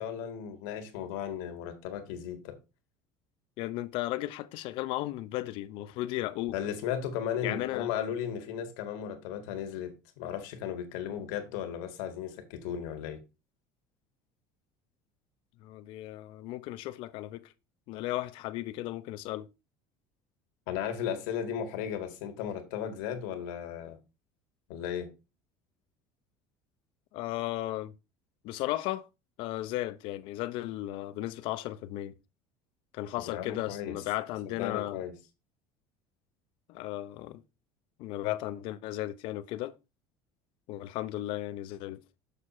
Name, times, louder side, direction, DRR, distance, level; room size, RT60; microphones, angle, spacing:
voice 1, 0.0-2.6 6.5-13.2 20.7-24.0 24.7-25.1 33.3-34.0 34.5-35.1, left 9 dB, 80° left, 2.0 m, -35 dB
voice 2, 3.6-6.5 7.4-7.9 15.6-17.5 17.9-19.5 27.1-27.9 28.4-29.1 29.4-32.1 32.9-35.0 36.7-37.4 38.0-39.7 40.7-42.0, left 16 dB, 60° left, 0.7 m, -35 dB
6.7 x 6.7 x 4.2 m
cardioid pair, 150°, 10 cm